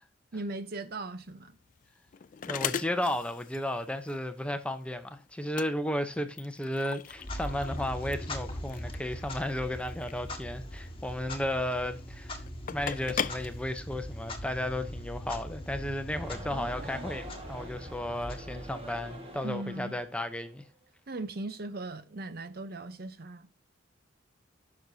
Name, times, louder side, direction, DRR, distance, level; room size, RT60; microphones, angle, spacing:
voice 1, 0.3-1.6 19.4-20.0 21.1-23.5, right 2 dB, 55° right, 0.8 m, -38 dB
sound 1, 1.2-14.5, left 8 dB, 45° left, 0.4 m, -40 dB
voice 2, 2.5-12.4 12.7-20.6, left 1 dB, 5° left, 0.7 m, -34 dB
Clock, 7.1-19.1, left 1 dB, 30° left, 1.5 m, -41 dB
sound 2, 16.1-20.6, right 1 dB, 30° right, 1.7 m, -45 dB
15.5 x 6.2 x 2.8 m
head